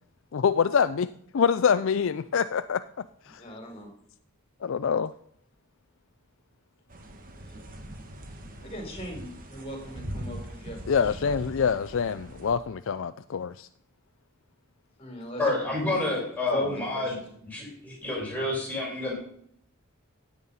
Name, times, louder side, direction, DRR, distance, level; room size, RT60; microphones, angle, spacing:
voice 1, 0.3-1.1 1.3-2.8 3.3-3.4 4.6-5.1 10.9-13.7, left 6 dB, 65° left, 13 dB, 0.4 m, -25 dB
voice 2, 3.4-3.9 8.6-11.3 15.0-16.1 16.5-17.2, equal, 30° left, 3 dB, 4.4 m, -39 dB
sound 1, 6.9-12.6, right 1 dB, 40° right, 1.9 m, -41 dB
voice 3, 15.4-17.1 17.5-19.1, left 2 dB, 10° left, -3 dB, 6.0 m, -29 dB
16.0 x 8.7 x 5.6 m, 0.67 s
head